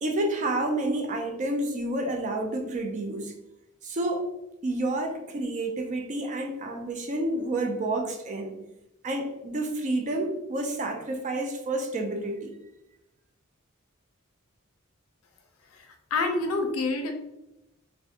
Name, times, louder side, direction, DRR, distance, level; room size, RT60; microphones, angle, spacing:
voice 1, 0.0-3.3 3.8-4.3 4.6-8.5 9.0-12.5, right 2 dB, 35° right, 4 dB, 0.3 m, -29 dB
voice 2, 16.1-17.1, left 3 dB, 90° left, 5 dB, 0.5 m, -26 dB
2.4 x 2.1 x 2.7 m, 0.89 s
head